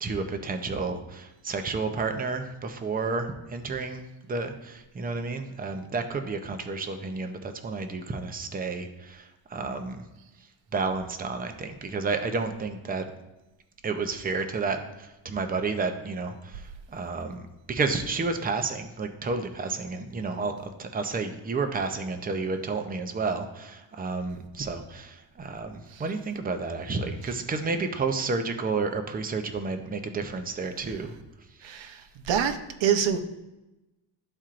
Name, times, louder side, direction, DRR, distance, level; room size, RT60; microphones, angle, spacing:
voice 1, 0.0-10.1 10.7-13.1 13.8-31.1 31.6-32.0, right 4 dB, 20° right, 6 dB, 0.5 m, -31 dB
voice 2, 31.6-33.2, right 8 dB, 75° right, 7 dB, 0.8 m, -26 dB
12.5 x 4.4 x 2.5 m, 1.0 s
cardioid pair, 170°, 46 cm